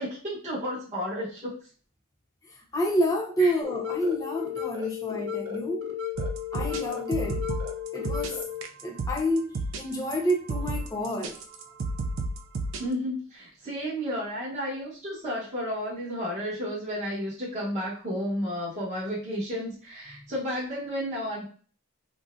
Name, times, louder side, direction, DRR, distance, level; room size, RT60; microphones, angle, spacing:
voice 1, 0.0-1.5 3.4-3.5 12.8-21.4, equal, 30° right, 1.1 m, -32 dB
voice 2, 2.7-5.9 6.5-7.4 7.9-8.4 8.8-11.4, equal, 15° left, 0.5 m, -28 dB
sound 1, 3.6-8.6, left 9 dB, 85° right, 0.7 m, -34 dB
sound 2, 6.2-12.9, right 2 dB, 60° right, 0.4 m, -32 dB
3.7 x 2.1 x 2.6 m
head